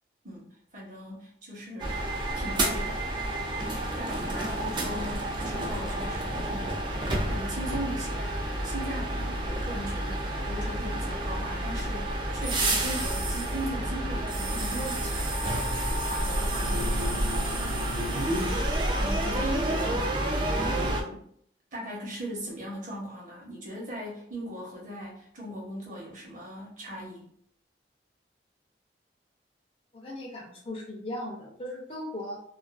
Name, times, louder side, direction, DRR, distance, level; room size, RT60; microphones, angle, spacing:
voice 1, 0.2-2.1 2.3-3.1 3.9-6.9 7.3-8.3 8.6-15.3 16.0-17.9 18.2-18.5 19.0-21.3 21.7-27.3, equal, 45° right, -3 dB, 0.9 m, -38 dB
sound 1, 1.8-21.0, right 1 dB, 25° right, 0.3 m, -29 dB
voice 2, 20.2-20.5 29.9-32.4, left 1 dB, 30° left, -2 dB, 0.5 m, -38 dB
2.4 x 2.3 x 2.3 m, 0.65 s
head